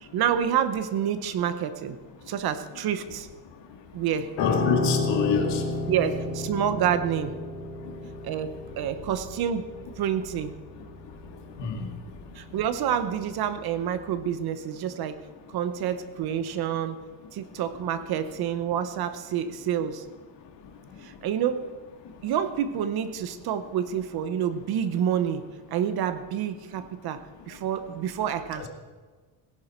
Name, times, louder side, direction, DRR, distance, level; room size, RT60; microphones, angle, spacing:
voice 1, 0.0-2.0 2.3-3.3 3.9-4.3 5.9-7.4 8.2-9.7 10.0-10.6 12.3-15.2 15.5-17.0 17.3-20.0 21.0-21.7 22.2-25.4 25.7-28.7, right 9 dB, 50° right, 12 dB, 0.9 m, -28 dB
Piano, 4.4-13.8 14.0-14.3, left 3 dB, 80° left, 3.7 m, -32 dB
voice 2, 4.4-5.6 11.6-11.9 28.6-28.7, left 5 dB, 60° left, 3 dB, 2.4 m, -27 dB
17.5 x 11.0 x 4.4 m, 1.5 s
cardioid pair, 170°, 47 cm